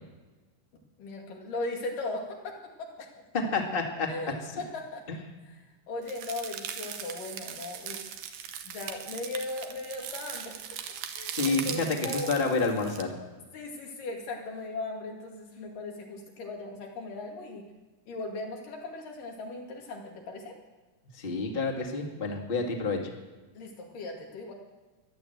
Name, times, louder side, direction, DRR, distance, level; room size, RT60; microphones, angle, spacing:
voice 1, 1.0-2.9 4.1-5.0 5.9-8.1 8.7-10.5 11.1-12.3 13.5-17.6 18.1-20.6 23.5-24.5, left 2 dB, 85° left, 0 dB, 4.0 m, -38 dB
voice 2, 3.3-4.1 4.4-4.6 5.1-5.2 11.3-13.1 21.2-23.0, left 3 dB, 20° left, 0 dB, 1.9 m, -29 dB
sound 1, 6.1-13.0, right 9 dB, 75° right, 2.5 m, -39 dB
14.5 x 11.5 x 7.9 m, 1.2 s
omnidirectional pair, 3.7 m